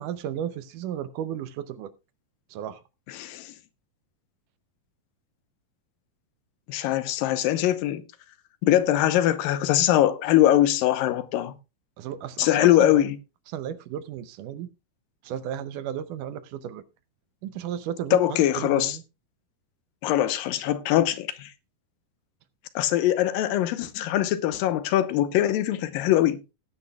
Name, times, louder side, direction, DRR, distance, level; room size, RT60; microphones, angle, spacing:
voice 1, 0.0-1.9 2.5-2.8 12.0-13.1 13.5-14.7 15.2-16.8 17.4-19.0, right 10 dB, 75° right, 2.1 m, -34 dB
voice 2, 3.1-3.5 6.7-8.0 8.6-11.6 12.4-13.2 18.1-19.0 20.0-21.5 22.8-26.4, left 13 dB, 85° left, 2.6 m, -22 dB
17.5 x 9.6 x 2.3 m
omnidirectional pair, 4.0 m